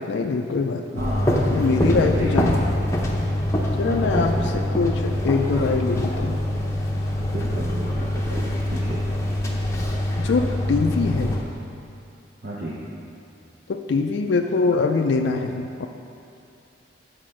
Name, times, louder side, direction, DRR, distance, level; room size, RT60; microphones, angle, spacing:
voice 1, 0.0-0.8 1.3-2.7 3.8-4.3 4.7-6.4 10.2-11.4 13.7-15.9, left 4 dB, 70° left, 4 dB, 0.4 m, -23 dB
voice 2, 0.9-2.4 3.8-4.5 7.2-9.0 12.4-12.8, right 1 dB, 50° right, -6 dB, 0.7 m, -32 dB
sound 1, 1.0-11.4, left 1 dB, 15° left, 0.6 m, -24 dB
7.6 x 4.5 x 6.3 m, 2.5 s
head